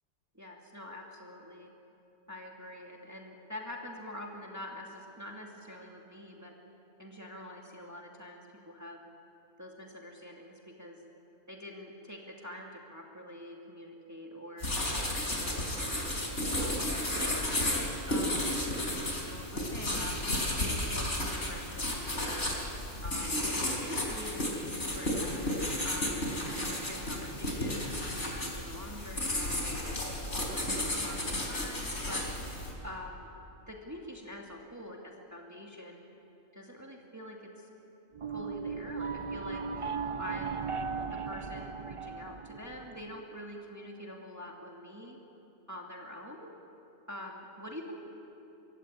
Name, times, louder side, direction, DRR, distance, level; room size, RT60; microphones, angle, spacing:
voice 1, 0.3-1.7 2.3-6.5 7.0-9.0 9.6-11.0 11.5-14.7 15.3-16.8 17.1-20.2 20.8-22.5 23.0-25.3 25.8-30.0 30.5-32.3 32.8-33.3 33.7-36.0 36.5-37.7 38.3-39.6 40.2-40.7 41.1-45.2 45.7-46.5 47.1-47.9, left 1 dB, 15° right, 0 dB, 2.4 m, -45 dB
sound 1, 14.6-32.7, left 1 dB, 65° left, 4.6 m, -33 dB
sound 2, 38.1-43.2, right 5 dB, 40° right, 0.5 m, -37 dB
24.5 x 23.5 x 8.8 m, 2.9 s
omnidirectional pair, 1.3 m